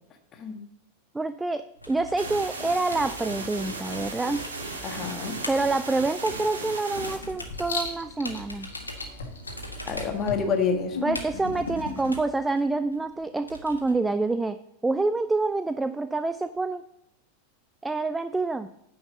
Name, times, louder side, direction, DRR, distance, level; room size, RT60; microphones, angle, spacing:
voice 1, 1.1-4.5 5.5-8.7 11.0-16.8 17.8-18.7, right 3 dB, 10° right, 12 dB, 0.4 m, -27 dB
sound 1, 1.8-13.9, equal, 85° left, 1.6 m, -42 dB
sound 2, 2.2-7.2, right 3 dB, 70° right, 2.0 m, -36 dB
voice 2, 4.8-5.3 9.8-11.1, left 5 dB, 30° left, 5 dB, 1.7 m, -28 dB
Writing, 6.9-12.1, left 4 dB, 70° left, 1.7 m, -37 dB
9.6 x 5.8 x 7.0 m, 0.80 s
figure-of-eight pair, 90°, 0 cm